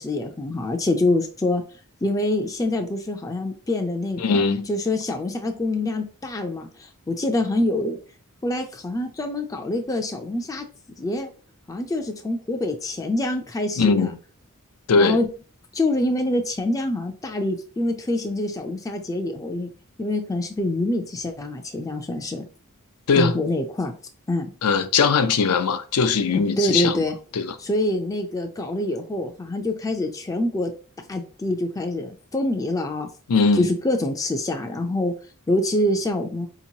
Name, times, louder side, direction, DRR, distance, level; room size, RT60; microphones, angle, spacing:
voice 1, 0.0-1.6 2.0-8.0 8.4-10.7 11.0-11.3 11.7-14.1 15.0-15.3 15.7-19.7 20.0-22.4 23.2-23.9 24.3-24.5 26.6-27.1 27.6-30.7 31.1-33.1 33.5-35.1 35.5-36.5, left 1 dB, 15° left, 0.4 m, -25 dB
voice 2, 4.2-4.7 13.8-14.2 14.9-15.2 23.1-23.3 24.6-27.0 27.3-27.6 33.3-33.7, left 4 dB, 90° left, 0.5 m, -20 dB
4.4 x 2.9 x 2.7 m
head